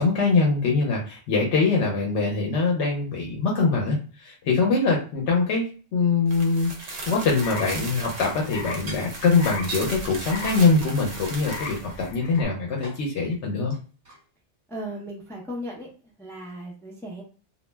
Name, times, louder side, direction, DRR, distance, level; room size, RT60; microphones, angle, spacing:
voice 1, 0.0-13.7, left 4 dB, 80° left, -2 dB, 0.9 m, -23 dB
sound 1, 6.3-12.1, right 2 dB, 60° right, 0.8 m, -37 dB
sound 2, 6.5-7.2 8.4-8.5 8.8-10.0 11.5-13.1 13.5-14.3 14.9-15.0, right 2 dB, 30° right, 1.3 m, -43 dB
sound 3, 7.4-12.4, left 3 dB, 55° left, 0.6 m, -39 dB
voice 2, 14.7-15.9 16.2-17.2, equal, 5° left, -1 dB, 0.3 m, -36 dB
2.3 x 2.0 x 3.2 m, 0.37 s
omnidirectional pair, 1.2 m